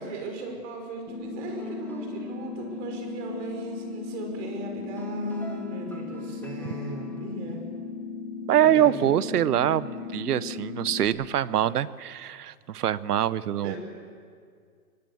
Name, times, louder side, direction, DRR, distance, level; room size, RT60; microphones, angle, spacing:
voice 1, 0.0-7.6 8.6-9.1 13.6-13.8, right 2 dB, 50° right, 3 dB, 5.3 m, -36 dB
sound 1, 1.1-11.1, left 5 dB, 75° left, 3.4 m, -37 dB
sound 2, 1.3-7.3, left 2 dB, 5° left, 1.7 m, -50 dB
voice 2, 8.5-13.8, right 11 dB, 75° right, 18 dB, 0.9 m, -24 dB
24.0 x 19.0 x 7.1 m, 2.1 s
hypercardioid pair, 135°, 46 cm